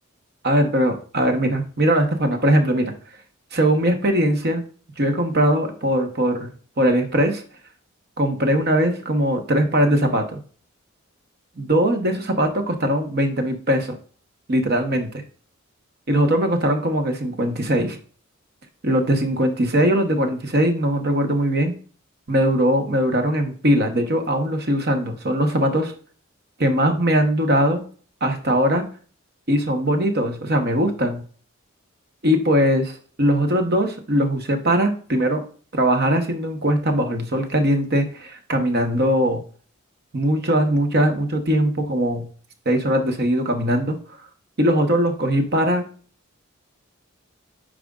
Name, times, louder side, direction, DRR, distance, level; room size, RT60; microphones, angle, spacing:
voice 1, 0.4-2.9 3.5-4.6 5.0-6.5 6.8-7.4 8.2-10.4 11.6-13.9 14.5-15.2 16.1-18.0 18.8-21.7 22.3-25.9 26.6-27.8 28.2-28.8 29.5-31.2 32.2-35.5 35.7-39.4 40.1-42.3 42.6-44.0 44.6-45.8, equal, 50° right, 6 dB, 1.0 m, -20 dB
8.9 x 5.0 x 2.4 m, 0.42 s
head